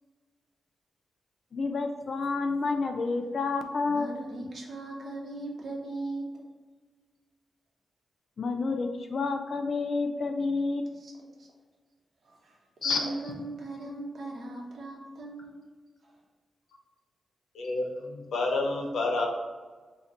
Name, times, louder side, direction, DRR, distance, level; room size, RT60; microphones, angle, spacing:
voice 1, 1.5-4.1 8.4-10.8, left 3 dB, 45° left, 5 dB, 0.4 m, -29 dB
voice 2, 3.8-6.5 11.0-11.1 11.4-11.5 12.2-15.7 16.0-16.2, right 2 dB, 55° right, -1 dB, 0.9 m, -39 dB
voice 3, 17.5-19.3, left 3 dB, 80° left, 0 dB, 0.8 m, -29 dB
3.8 x 2.9 x 4.1 m, 1.4 s
wide cardioid pair, 165°, 0 cm